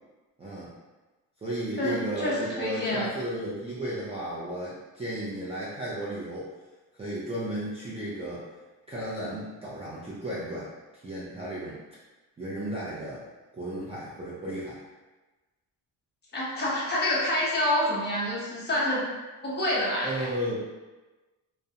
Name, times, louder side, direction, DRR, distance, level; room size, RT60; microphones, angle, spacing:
voice 1, 0.4-0.7 1.4-6.5 6.9-8.4 8.9-10.7 11.0-11.8 12.4-13.2 13.5-14.8 20.0-20.7, right 1 dB, 15° right, -9 dB, 0.4 m, -34 dB
voice 2, 1.8-3.1 16.3-19.0 19.4-20.3, left 1 dB, 25° left, -6 dB, 0.8 m, -27 dB
2.4 x 2.1 x 2.7 m, 1.2 s
cardioid pair, 115°, 38 cm